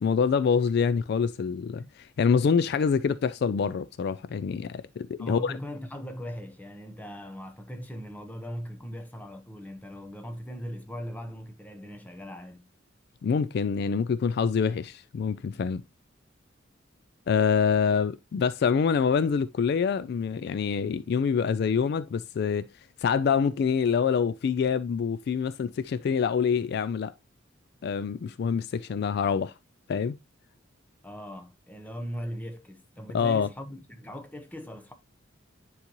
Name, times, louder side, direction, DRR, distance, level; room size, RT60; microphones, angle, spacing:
voice 1, 0.0-5.6 13.2-15.8 17.3-22.7 23.0-27.1 27.8-29.5 29.9-30.2 33.1-33.5, left 6 dB, 55° left, 0.3 m, -26 dB
voice 2, 5.2-12.7 31.0-34.9, equal, 10° left, 0.8 m, -39 dB
9.7 x 4.0 x 2.9 m
head